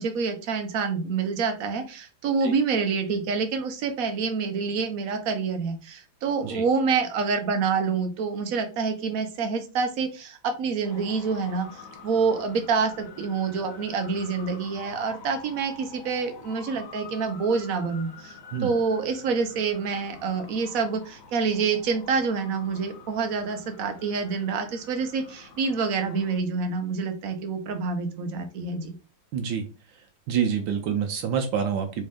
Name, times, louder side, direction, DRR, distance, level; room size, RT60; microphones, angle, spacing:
voice 1, 0.0-29.0, right 5 dB, 60° right, 6 dB, 1.0 m, -27 dB
Traffic noise roadway noise, 10.8-26.4, left 4 dB, 60° left, 1.8 m, -47 dB
voice 2, 29.3-29.7 30.3-32.0, right 7 dB, 75° right, 4 dB, 1.3 m, -27 dB
4.2 x 3.2 x 3.5 m, 0.33 s
omnidirectional pair, 2.2 m